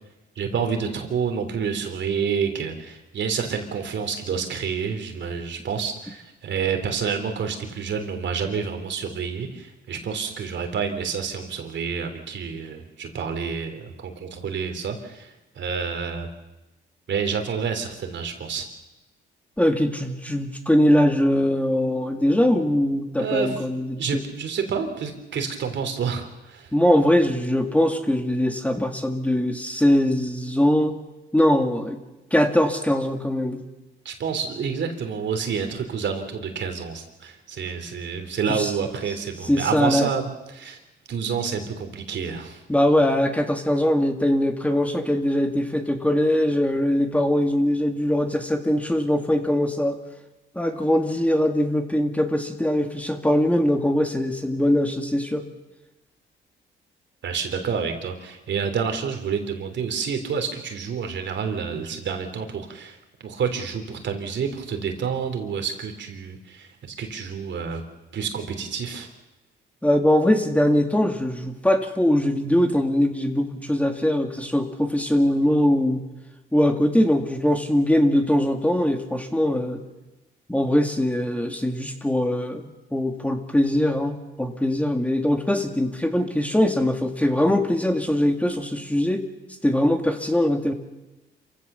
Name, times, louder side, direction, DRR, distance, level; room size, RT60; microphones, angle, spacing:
voice 1, 0.4-16.3 17.1-18.7 23.2-23.6 24.0-26.7 34.0-40.8 41.1-42.6 57.2-63.0 63.2-67.8 68.1-69.1, right 6 dB, 65° right, 6 dB, 3.3 m, -28 dB
voice 2, 19.6-24.2 26.7-31.0 31.3-32.0 32.3-33.6 38.5-38.7 39.5-40.1 42.7-50.0 50.6-55.5 69.8-76.1 76.5-79.8 80.5-89.2 89.6-90.7, left 1 dB, 5° left, 5 dB, 2.0 m, -21 dB
27.0 x 16.0 x 6.8 m, 1.0 s
cardioid pair, 85°, 20 cm